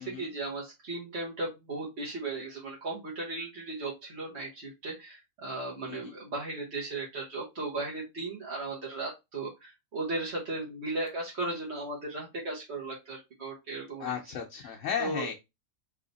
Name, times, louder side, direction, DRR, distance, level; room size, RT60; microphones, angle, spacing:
voice 1, 0.0-14.1 14.5-15.3, right 2 dB, 55° right, 1.4 m, -36 dB
voice 2, 14.0-15.3, left 8 dB, 75° left, 1.0 m, -35 dB
3.4 x 2.8 x 3.8 m
omnidirectional pair, 1.4 m